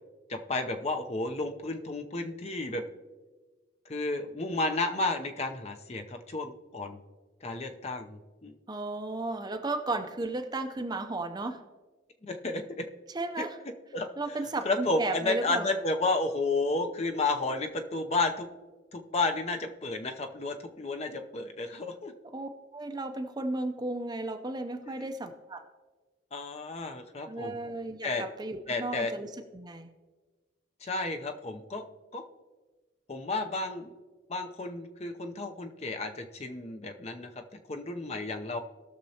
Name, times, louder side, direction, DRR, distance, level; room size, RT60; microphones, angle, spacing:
voice 1, 0.3-2.8 3.9-7.0 7.4-8.5 12.2-12.9 13.4-13.5 13.9-14.1 14.6-18.5 18.9-22.1 24.9-25.0 26.3-27.6 28.0-28.2 28.7-29.1 30.8-31.8 32.1-32.2 33.1-33.9 34.3-37.4 37.7-38.6, left 2 dB, 35° left, 6 dB, 0.6 m, -32 dB
voice 2, 8.7-11.6 13.1-13.6 14.2-15.7 22.3-25.6 27.3-29.9, right 2 dB, 20° right, 6 dB, 0.6 m, -34 dB
19.0 x 6.6 x 2.9 m, 1.3 s
head